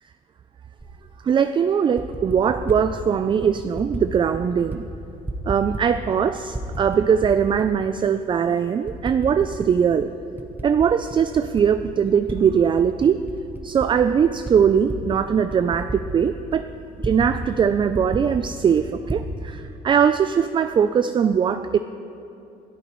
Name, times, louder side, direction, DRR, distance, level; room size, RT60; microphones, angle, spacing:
Typing, 0.8-0.9 1.8-2.8 3.4-4.0 4.3-4.8 5.1-6.2 6.5-7.7 8.2-8.3 8.9-9.7 10.0-12.4 12.7-17.3 17.6-17.7 17.9-19.3, right 1 dB, 10° right, 1.2 m, -33 dB
voice 1, 1.2-4.9 5.4-10.1 10.6-13.3 13.6-16.7 17.0-21.8, right 7 dB, 30° right, 10 dB, 0.4 m, -21 dB
22.5 x 12.5 x 3.1 m, 2.8 s
cardioid pair, 110°, 17 cm